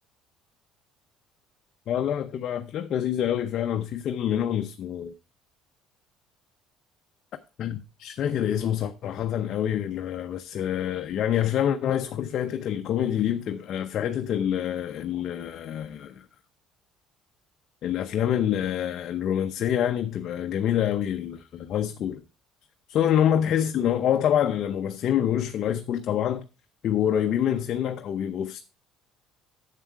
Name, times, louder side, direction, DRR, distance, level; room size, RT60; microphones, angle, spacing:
voice 1, 1.9-5.1 7.6-16.2 17.8-22.2 22.9-26.4 26.8-28.6, left 10 dB, 55° left, 0.7 m, -26 dB
7.7 x 7.5 x 4.6 m
cardioid pair, 110°, 0 cm